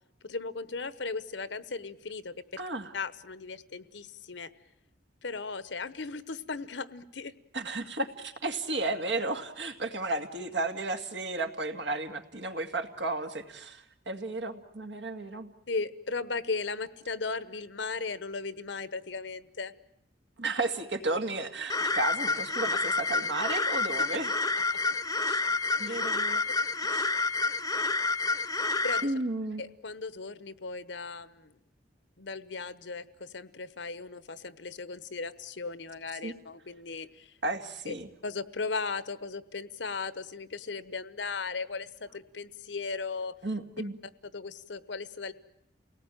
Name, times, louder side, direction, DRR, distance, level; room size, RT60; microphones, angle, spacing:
voice 1, 0.2-2.6 2.9-4.5 5.2-7.3 15.7-19.7 25.8-26.0 28.8-29.1 29.6-31.5 32.2-37.3 37.9-38.0 38.2-43.3 43.8-43.9 44.3-45.3, left 4 dB, 75° left, 15 dB, 1.1 m, -37 dB
voice 2, 2.6-2.9 7.5-15.5 20.4-24.3 25.2-25.4 25.8-26.4 26.9-27.1 29.0-29.6 36.2-36.3 37.4-38.1 43.4-44.0, right 2 dB, 70° right, 5 dB, 2.2 m, -33 dB
sound 1, 21.7-29.0, left 3 dB, 20° left, 0.9 m, -29 dB
29.0 x 18.5 x 9.1 m, 0.82 s
head